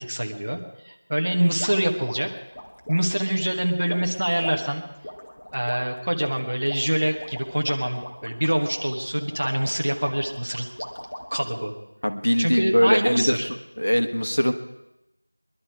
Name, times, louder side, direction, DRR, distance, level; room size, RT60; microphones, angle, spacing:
voice 1, 0.0-2.3 2.9-4.8 5.5-10.7 11.3-11.7 12.4-13.5, right 1 dB, 35° right, 3 dB, 1.3 m, -25 dB
sound 1, 1.6-11.5, equal, 25° left, 1.5 m, -39 dB
voice 2, 12.0-13.4 13.8-14.5, equal, 60° left, 7 dB, 1.5 m, -21 dB
22.0 x 11.5 x 4.8 m, 0.91 s
figure-of-eight pair, 175°, 0 cm